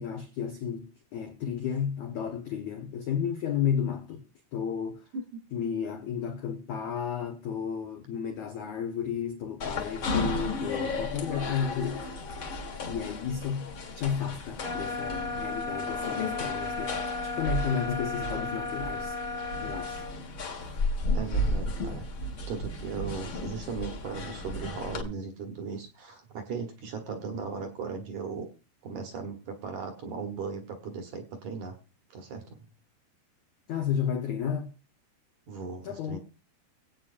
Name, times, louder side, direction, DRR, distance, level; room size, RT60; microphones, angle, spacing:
voice 1, 0.0-4.2 4.5-5.0 5.5-12.1 12.9-19.2 19.6-20.1 20.6-20.8 33.7-34.7 35.8-36.2, left 8 dB, 90° left, 1.6 m, -32 dB
sound 1, 9.6-25.0, left 2 dB, 60° left, 1.2 m, -34 dB
sound 2, 14.6-20.2, left 3 dB, 30° left, 1.3 m, -34 dB
voice 2, 21.1-22.1 22.5-28.5 28.8-31.8 32.1-32.6 35.5-36.2, right 5 dB, 65° right, 2.0 m, -37 dB
22.0 x 8.6 x 2.5 m
omnidirectional pair, 5.0 m